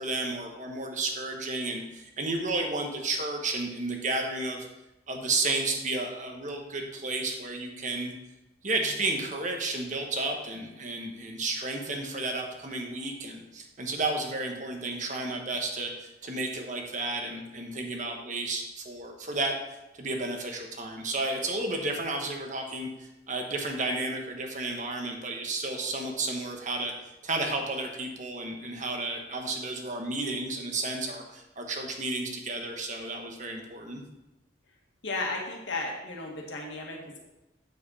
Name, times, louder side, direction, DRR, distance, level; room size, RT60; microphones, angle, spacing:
voice 1, 0.0-4.7 5.1-8.1 8.6-19.5 20.0-26.9 27.2-34.0, right 2 dB, 45° right, 3 dB, 1.3 m, -32 dB
voice 2, 35.0-37.0, left 2 dB, 85° left, 0 dB, 2.0 m, -34 dB
8.5 x 7.6 x 4.2 m, 0.97 s
head